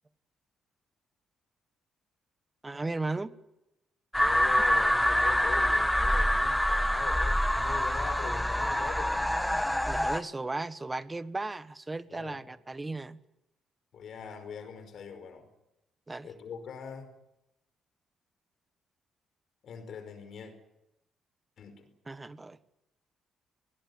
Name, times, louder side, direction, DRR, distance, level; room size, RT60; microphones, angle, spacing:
voice 1, 2.6-3.3 9.9-13.2 16.1-16.3 22.1-22.6, right 2 dB, 20° right, 13 dB, 1.4 m, -35 dB
sound 1, 4.1-10.2, equal, 5° left, 1.3 m, -26 dB
voice 2, 4.2-9.3 12.1-12.4 13.9-15.5 16.2-17.1 19.6-20.5 21.6-21.9, left 6 dB, 65° left, 8 dB, 5.2 m, -42 dB
22.0 x 20.5 x 9.8 m, 0.91 s
cardioid pair, 90°, 0 cm